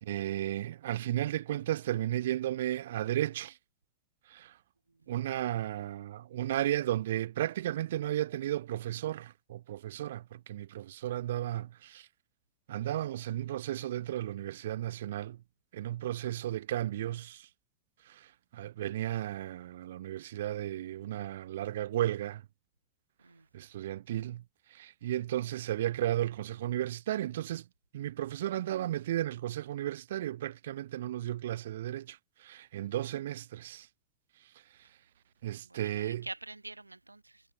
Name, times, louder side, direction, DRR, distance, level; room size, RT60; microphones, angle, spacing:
voice 1, 0.0-3.6 4.3-4.6 5.1-12.1 12.7-15.4 15.7-17.5 18.1-22.4 23.5-24.4 24.7-27.6 27.9-33.9 35.4-36.3, right 13 dB, 60° right, 3.8 m, -34 dB
voice 2, 35.6-37.4, right 2 dB, 85° right, 5.0 m, -45 dB
figure-of-eight pair, 90°, 0 cm